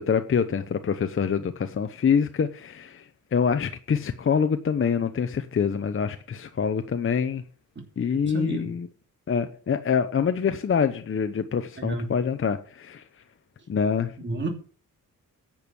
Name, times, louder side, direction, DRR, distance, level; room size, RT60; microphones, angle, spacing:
voice 1, 0.0-7.4 8.0-8.9 9.3-13.2 13.7-14.2, left 6 dB, 40° left, 9 dB, 0.7 m, -25 dB
voice 2, 8.3-8.7 11.8-12.1 14.2-14.5, right 2 dB, 35° right, 3 dB, 2.8 m, -30 dB
10.5 x 7.0 x 7.1 m, 0.41 s
wide cardioid pair, 175°, 33 cm